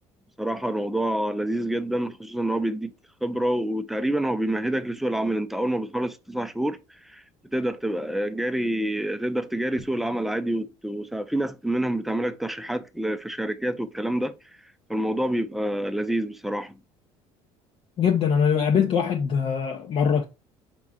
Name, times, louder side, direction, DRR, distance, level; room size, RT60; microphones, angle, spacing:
voice 1, 0.4-2.9 3.2-7.2 7.5-14.3 14.9-16.8, right 1 dB, ahead, 0.5 m, -27 dB
voice 2, 18.0-20.2, left 7 dB, 50° left, 0.8 m, -22 dB
5.3 x 3.7 x 2.4 m
supercardioid pair, 100°, 13 cm